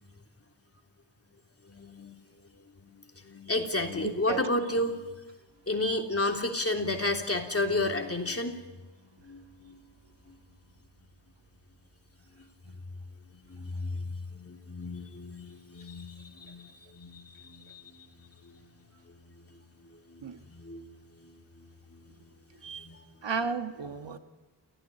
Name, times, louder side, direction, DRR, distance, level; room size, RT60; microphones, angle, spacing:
voice 1, 1.7-2.1 2.8-2.9 3.2-5.0 5.7-8.6 9.2-9.8 13.4-18.0 18.4-18.5 20.1-20.9 21.2-21.3 21.9-22.0 22.6-23.0, left 2 dB, 30° left, 3 dB, 3.4 m, -32 dB
voice 2, 4.0-4.5 20.2-20.4 23.2-24.2, right 5 dB, 75° right, 8 dB, 1.6 m, -33 dB
29.0 x 16.0 x 10.0 m, 1.3 s
wide cardioid pair, 90°, 44 cm